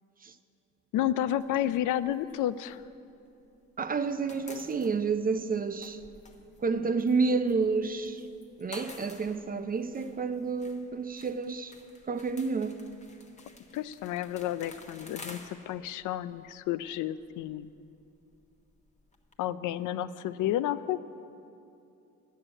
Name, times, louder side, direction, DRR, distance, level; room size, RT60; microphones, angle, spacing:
voice 1, 0.9-2.8 13.7-17.7 19.4-21.0, left 12 dB, 85° left, 0.5 m, -31 dB
sound 1, 1.4-3.6 3.9-19.4, left 3 dB, 25° left, 1.1 m, -52 dB
voice 2, 3.8-6.0 6.6-8.3 8.6-11.7 12.1-12.8, right 4 dB, 30° right, 0.5 m, -30 dB
10.5 x 6.5 x 8.8 m
cardioid pair, 90°, 30 cm